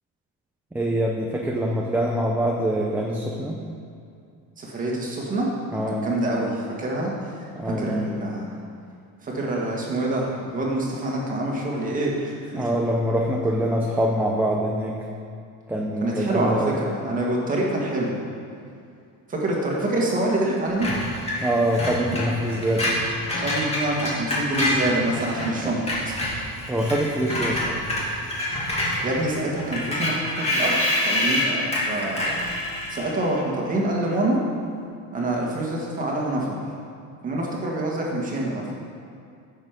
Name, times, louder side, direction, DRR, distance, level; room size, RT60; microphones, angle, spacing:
voice 1, 0.7-3.6 5.7-6.1 7.5-8.1 12.6-15.0 15.7-16.7 21.4-23.0 26.7-27.8, right 1 dB, 5° right, -1 dB, 0.6 m, -24 dB
voice 2, 4.6-5.5 5.7-7.4 7.8-8.5 9.2-12.7 16.0-18.2 19.3-20.9 23.4-26.2 29.0-30.7 31.1-32.3 32.9-34.4 35.1-36.5 37.2-38.7, right 1 dB, 25° right, -3 dB, 2.0 m, -26 dB
Screech, 20.8-25.5 25.8-33.2, left 1 dB, 20° left, 2.2 m, -27 dB
15.0 x 6.6 x 5.2 m, 2.4 s
cardioid pair, 170°, 35 cm